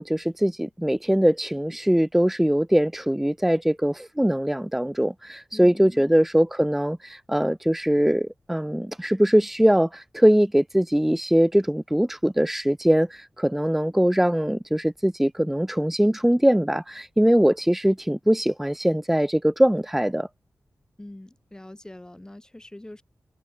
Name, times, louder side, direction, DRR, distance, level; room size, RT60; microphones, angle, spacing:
voice 1, 0.0-20.3, equal, 5° right, 0.8 m, -22 dB
voice 2, 5.5-6.1 21.0-23.0, left 1 dB, 10° left, 2.0 m, -43 dB
wide cardioid pair, 150°, 6 cm